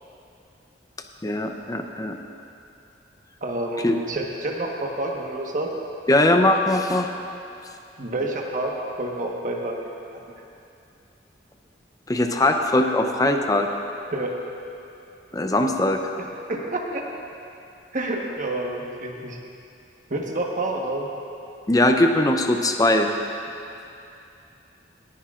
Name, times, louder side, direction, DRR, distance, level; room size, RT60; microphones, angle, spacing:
voice 1, 1.2-2.2 3.8-3.9 6.1-7.1 12.1-13.7 15.3-16.0 21.7-23.1, left 1 dB, 20° left, 4 dB, 0.6 m, -20 dB
voice 2, 3.4-5.7 8.0-9.8 14.1-14.3 16.5-17.0 17.9-19.4 20.1-21.1, right 2 dB, 45° right, 0 dB, 1.2 m, -28 dB
19.5 x 10.5 x 2.5 m, 2.6 s
head